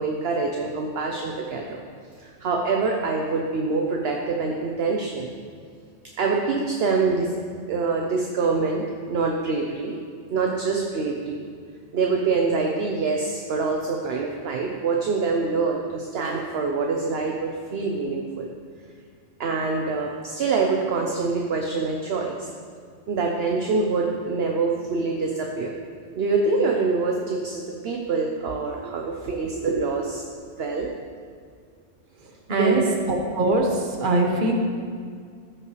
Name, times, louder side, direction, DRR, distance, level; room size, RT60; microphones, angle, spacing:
voice 1, 0.0-1.8 2.2-5.3 6.2-7.3 7.7-10.0 10.3-11.4 11.9-18.5 19.4-22.5 23.1-25.7 26.2-30.2 30.6-30.9 32.5-32.9, right 4 dB, 60° right, 1 dB, 0.9 m, -25 dB
voice 2, 32.5-32.8 33.1-33.7 34.0-34.5, right 2 dB, 45° right, 1 dB, 1.2 m, -22 dB
14.5 x 6.0 x 3.1 m, 2.2 s
omnidirectional pair, 1.3 m